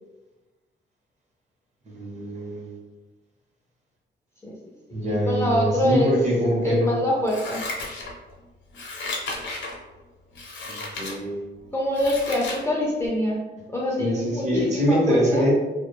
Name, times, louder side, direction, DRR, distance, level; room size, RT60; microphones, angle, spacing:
voice 1, 1.9-2.7 4.9-6.9 10.7-11.4 14.0-15.5, equal, 40° right, -2 dB, 0.7 m, -24 dB
voice 2, 5.0-6.3 6.6-7.6 11.7-13.4 13.7-15.5, left 1 dB, 15° left, -4 dB, 0.4 m, -25 dB
Scissors, 7.2-8.3 8.7-9.8 10.3-11.1 11.6-12.6 13.0-13.1, left 2 dB, 80° left, 0.7 m, -34 dB
2.3 x 2.1 x 2.9 m, 1.2 s
wide cardioid pair, 140°, 19 cm